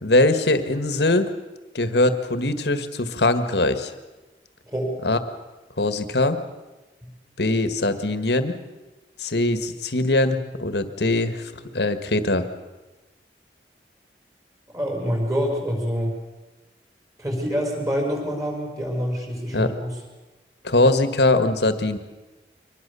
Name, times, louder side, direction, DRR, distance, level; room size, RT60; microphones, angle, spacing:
voice 1, 0.0-1.3 1.7-3.9 5.0-5.2 5.8-6.4 7.4-8.5 9.2-11.4 11.7-12.5 19.5-19.8 20.6-22.0, left 2 dB, 70° left, 10 dB, 1.7 m, -21 dB
voice 2, 14.7-16.1 17.2-19.9, equal, 20° right, 1 dB, 5.7 m, -26 dB
24.0 x 20.0 x 7.0 m, 1.1 s
head